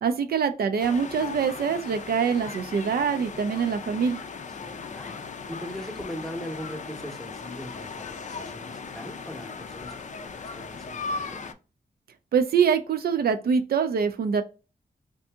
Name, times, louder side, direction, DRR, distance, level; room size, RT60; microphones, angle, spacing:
voice 1, 0.0-4.2 12.3-14.4, right 6 dB, 70° right, 8 dB, 0.4 m, -24 dB
sound 1, 0.8-11.5, left 4 dB, 50° left, 0.4 m, -38 dB
voice 2, 4.6-5.2 5.5-11.4, equal, ahead, 3 dB, 0.7 m, -40 dB
2.7 x 2.6 x 3.4 m, 0.32 s
wide cardioid pair, 115°, 16 cm